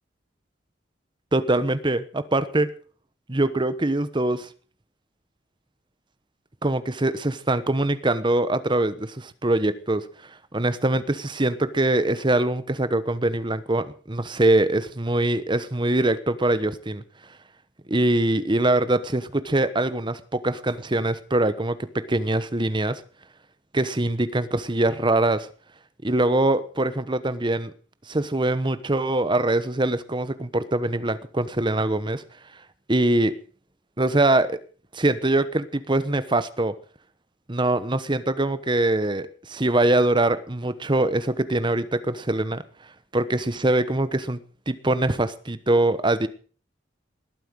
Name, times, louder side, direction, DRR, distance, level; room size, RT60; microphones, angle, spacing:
voice 1, 1.3-2.7 3.3-4.5 6.6-17.0 17.9-23.0 23.7-25.5 26.0-27.7 28.1-32.2 32.9-33.3 34.0-34.6 34.9-36.7 37.5-42.6 43.1-44.4 44.7-46.3, right 2 dB, 25° right, 13 dB, 1.0 m, -23 dB
20.0 x 9.2 x 6.3 m, 0.42 s
head